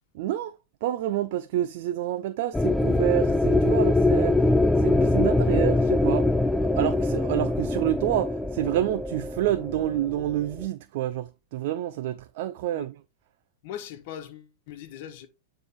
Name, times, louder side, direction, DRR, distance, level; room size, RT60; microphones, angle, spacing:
voice 1, 0.1-0.6 0.8-4.5 4.8-6.3 6.6-13.0, right 13 dB, 60° right, 0.5 m, -28 dB
sound 1, 2.5-10.7, left 2 dB, 5° left, 0.3 m, -23 dB
voice 2, 13.6-15.3, left 10 dB, 55° left, 1.3 m, -40 dB
9.2 x 3.4 x 3.6 m
hypercardioid pair, 125°, 0 cm